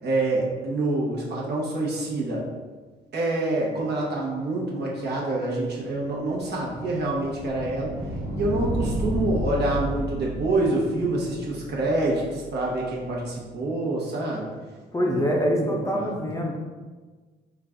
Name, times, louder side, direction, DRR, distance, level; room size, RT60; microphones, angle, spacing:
voice 1, 0.0-2.4 3.1-7.9 8.4-14.5 15.0-16.2, right 2 dB, 55° right, -4 dB, 1.1 m, -27 dB
sound 1, 6.1-12.8, equal, 80° right, 1.1 m, -32 dB
voice 2, 14.9-16.6, equal, 15° left, -1 dB, 0.6 m, -24 dB
3.9 x 2.4 x 3.6 m, 1.4 s
cardioid pair, 90°, 20 cm